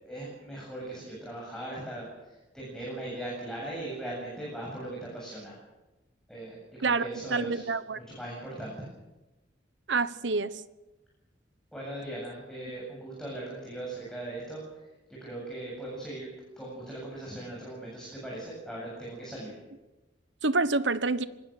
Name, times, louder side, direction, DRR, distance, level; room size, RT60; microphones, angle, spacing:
voice 1, 0.0-2.1 2.5-5.5 6.3-7.7 7.9-8.9 11.7-14.6 15.2-16.3 16.6-19.5, right 1 dB, 5° left, 7.9 m, -39 dB
voice 2, 6.8-8.0 9.9-10.5 20.4-21.2, right 3 dB, 75° right, 1.1 m, -27 dB
25.5 x 20.0 x 6.7 m
head